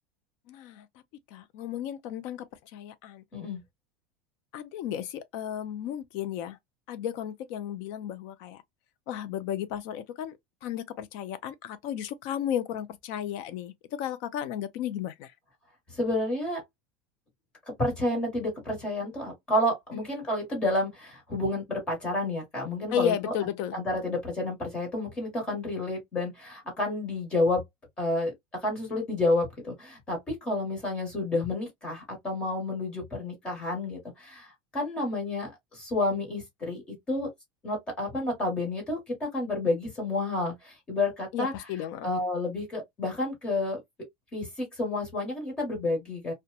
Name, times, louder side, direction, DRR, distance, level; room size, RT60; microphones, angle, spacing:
voice 1, 0.5-0.9 1.3-2.5 2.7-3.2 4.5-6.6 6.9-8.6 9.1-15.3 19.9-20.1 22.9-23.8 41.3-42.3, left 10 dB, 45° left, 0.4 m, -34 dB
voice 2, 15.9-16.6 17.8-23.3 23.7-27.6 28.0-37.3 37.6-41.5 42.0-43.8 44.3-46.3, left 2 dB, 15° left, 1.2 m, -30 dB
2.8 x 2.2 x 2.2 m
supercardioid pair, 175°, 6 cm